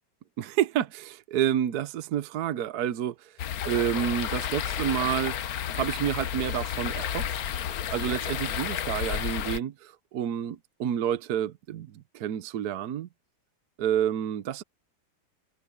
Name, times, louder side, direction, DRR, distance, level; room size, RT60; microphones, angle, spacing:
voice 1, 0.4-5.4 5.7-13.1 13.8-14.6, right 10 dB, 60° right, 1.2 m, -29 dB
sound 1, 3.4-9.6, left 9 dB, 60° left, 1.1 m, -31 dB
omnidirectional pair, 2.1 m